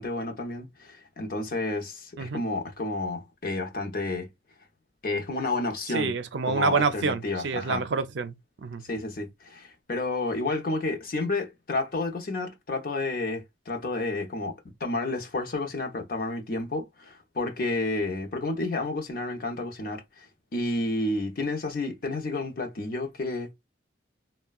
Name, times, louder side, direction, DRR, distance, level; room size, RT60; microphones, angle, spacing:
voice 1, 0.0-4.3 5.0-6.1 6.4-7.8 8.8-20.3 20.5-23.5, left 2 dB, 50° left, 0.6 m, -31 dB
voice 2, 5.9-8.8, right 5 dB, 75° right, 0.5 m, -28 dB
3.5 x 2.1 x 2.3 m
head